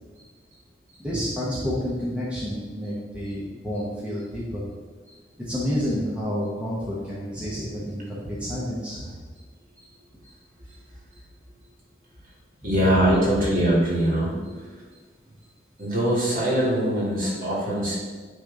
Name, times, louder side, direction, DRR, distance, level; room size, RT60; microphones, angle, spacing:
voice 1, 1.0-4.6 5.4-9.0 13.4-13.5, equal, 5° right, -8 dB, 1.1 m, -29 dB
voice 2, 12.6-14.3 15.8-17.9, right 1 dB, 50° right, -5 dB, 2.0 m, -22 dB
9.7 x 3.4 x 3.9 m, 1.5 s
head